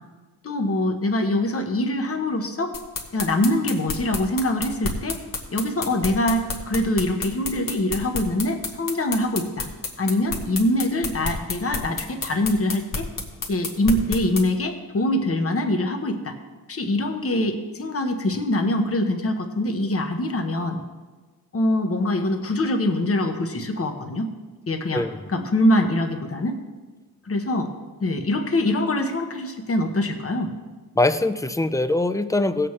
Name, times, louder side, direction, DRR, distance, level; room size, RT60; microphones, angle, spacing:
voice 1, 0.4-2.7 3.1-5.2 5.5-9.7 10.0-13.1 13.5-16.4 16.7-20.8 21.5-24.3 24.7-26.6 27.3-27.7 28.0-30.5, left 1 dB, 40° left, 5 dB, 1.0 m, -24 dB
sound 1, 2.7-14.4, left 4 dB, 60° left, 1.4 m, -29 dB
voice 2, 31.0-32.7, left 2 dB, 10° left, 11 dB, 0.4 m, -22 dB
18.0 x 7.7 x 3.2 m, 1.3 s
wide cardioid pair, 150°, 37 cm